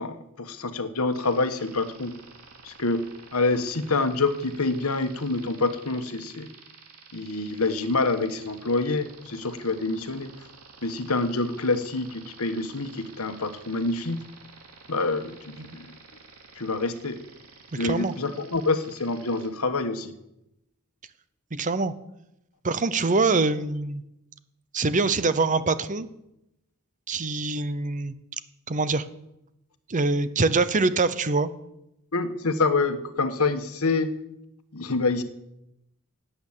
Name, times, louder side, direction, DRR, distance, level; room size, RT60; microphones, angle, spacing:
voice 1, 0.0-2.2 2.6-3.0 3.3-6.5 7.1-10.3 10.8-14.2 14.9-15.9 16.5-17.2 17.7-20.1 32.1-34.2 34.7-35.2, left 3 dB, 70° left, 9 dB, 1.3 m, -27 dB
sound 1, 1.1-19.5, right 4 dB, 85° right, 2.6 m, -50 dB
voice 2, 17.7-18.1 21.5-21.9 22.6-24.0 24.7-26.1 27.1-28.2 28.7-29.0 29.9-31.5, right 3 dB, 35° right, 14 dB, 0.8 m, -24 dB
17.0 x 8.8 x 7.3 m, 0.85 s
head